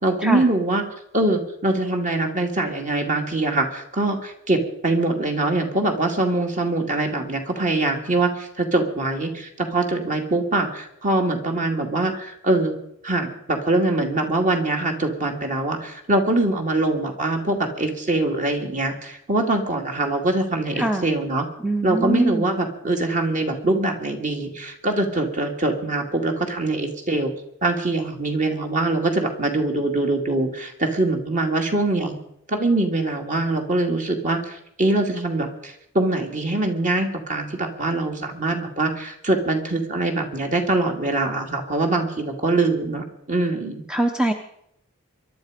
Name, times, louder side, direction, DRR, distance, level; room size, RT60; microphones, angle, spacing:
voice 1, 0.0-0.8 1.1-12.7 13.0-21.5 21.8-27.3 27.6-32.2 32.5-43.8, right 2 dB, 35° right, 3 dB, 2.5 m, -23 dB
voice 2, 20.8-21.1 21.6-22.5 43.9-44.3, right 1 dB, 5° right, 5 dB, 0.8 m, -23 dB
23.0 x 11.5 x 5.1 m, 0.76 s
head